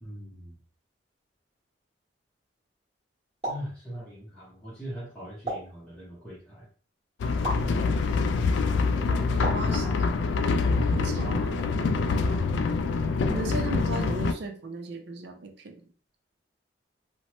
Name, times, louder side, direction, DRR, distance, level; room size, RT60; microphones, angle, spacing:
voice 1, 0.0-0.5 3.5-6.7 9.2-9.9 10.8-12.4, right 1 dB, 5° left, -9 dB, 0.8 m, -41 dB
sound 1, 3.4-3.7 5.5-5.8 7.4-7.7 9.4-9.7, right 1 dB, 35° right, 1.4 m, -32 dB
sound 2, 7.2-14.3, left 4 dB, 75° left, 0.3 m, -25 dB
voice 2, 9.1-9.9 10.9-11.7 13.3-15.8, right 2 dB, 65° right, 6 dB, 0.5 m, -36 dB
2.9 x 2.1 x 3.0 m, 0.43 s
head